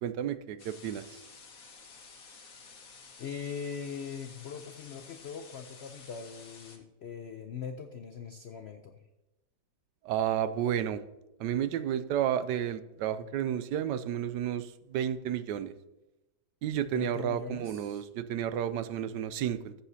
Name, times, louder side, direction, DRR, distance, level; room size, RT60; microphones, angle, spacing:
voice 1, 0.0-1.2 10.0-11.0 11.4-15.7 16.6-19.8, right 10 dB, 80° right, 13 dB, 1.2 m, -31 dB
sound 1, 0.6-6.8, left 4 dB, 55° left, 1.7 m, -52 dB
voice 2, 3.2-9.0 16.9-18.1, left 6 dB, 75° left, 7 dB, 0.6 m, -41 dB
14.5 x 7.1 x 2.8 m, 1.0 s
omnidirectional pair, 1.9 m